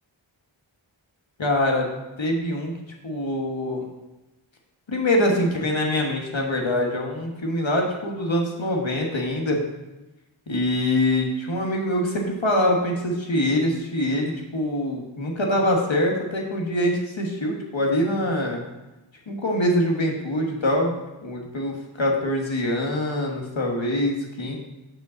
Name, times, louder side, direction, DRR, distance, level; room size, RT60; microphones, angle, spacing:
voice 1, 1.4-1.9 2.2-2.7 3.0-3.9 4.9-9.6 10.5-18.6 19.3-24.6, left 1 dB, 70° left, 0 dB, 1.5 m, -24 dB
6.7 x 5.3 x 6.4 m, 1.0 s
wide cardioid pair, 45°, 48 cm